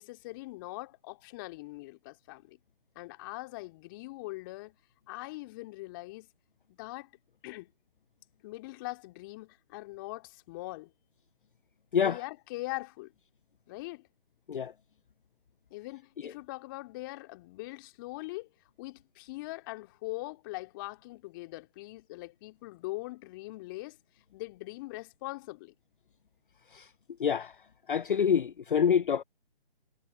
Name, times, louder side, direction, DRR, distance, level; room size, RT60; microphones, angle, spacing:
voice 1, 0.0-2.6 3.0-4.8 5.1-6.3 6.7-7.1 7.4-7.7 8.4-10.9 11.9-13.1 13.7-14.1 15.7-18.5 18.8-25.7, left 21 dB, 20° left, 2.5 m, -42 dB
voice 2, 27.2-27.6 27.9-29.2, left 7 dB, 60° left, 0.5 m, -26 dB
figure-of-eight pair, 150°, 30 cm